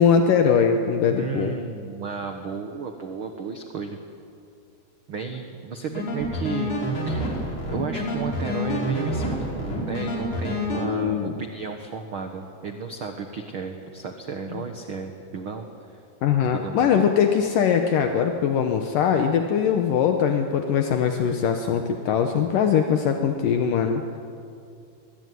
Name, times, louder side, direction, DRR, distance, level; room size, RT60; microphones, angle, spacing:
voice 1, 0.0-1.5 10.8-11.4 16.2-24.0, left 7 dB, 70° left, 5 dB, 2.6 m, -21 dB
voice 2, 1.1-4.0 5.1-6.8 7.0-7.3 7.7-16.0 16.5-16.9, right 5 dB, 55° right, 5 dB, 1.4 m, -33 dB
sound 1, 5.8-10.8, left 1 dB, 45° left, 5.7 m, -28 dB
22.0 x 22.0 x 9.5 m, 2.4 s
omnidirectional pair, 4.2 m